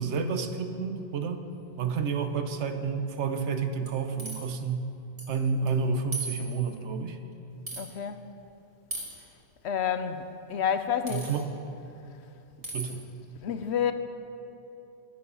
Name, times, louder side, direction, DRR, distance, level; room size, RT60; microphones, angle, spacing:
voice 1, 0.0-1.4 1.8-4.8 5.3-7.2 11.1-11.5 12.7-13.0, right 5 dB, 75° right, 8 dB, 1.1 m, -30 dB
sound 1, 3.9-4.6 5.2-5.4 5.7-5.8 6.1-6.8 7.7-7.8 8.9-9.2 11.1-11.4 12.6-12.9, right 2 dB, 30° right, 1.7 m, -38 dB
voice 2, 7.7-8.3 9.6-10.2 10.5-11.3 13.4-13.9, left 8 dB, 70° left, 9 dB, 0.9 m, -29 dB
11.5 x 9.8 x 5.5 m, 2.9 s
omnidirectional pair, 1.2 m